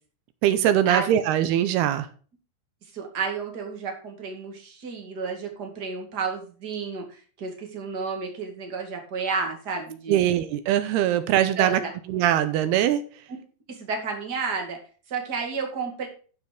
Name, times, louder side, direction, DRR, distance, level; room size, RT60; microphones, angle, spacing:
voice 1, 0.4-2.1 10.1-11.8 12.1-13.0, right 11 dB, 75° right, 12 dB, 2.5 m, -22 dB
voice 2, 2.9-7.1 7.4-10.2 11.1-11.2 11.6-11.9 13.7-14.8 15.1-16.1, right 5 dB, 35° right, 2 dB, 1.8 m, -31 dB
12.5 x 5.8 x 5.2 m, 0.38 s
omnidirectional pair, 5.2 m